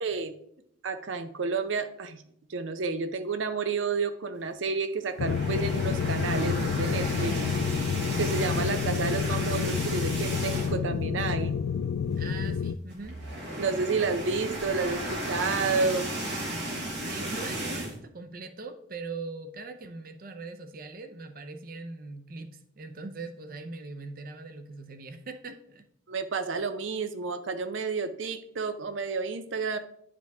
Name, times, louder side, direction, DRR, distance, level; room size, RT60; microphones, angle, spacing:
voice 1, 0.0-0.3 0.8-2.2 2.5-7.4 8.2-11.5 13.6-16.1 26.1-29.8, right 4 dB, 90° right, 9 dB, 0.6 m, -30 dB
sound 1, 5.1-10.9 11.3-11.5 11.8-11.9 12.9-17.9, right 1 dB, 65° right, 2.2 m, -34 dB
sound 2, 5.2-12.7, left 6 dB, 85° left, 0.3 m, -29 dB
voice 2, 12.2-13.2 17.0-25.8, right 3 dB, 50° right, 8 dB, 0.6 m, -41 dB
10.5 x 5.0 x 3.5 m, 0.70 s
head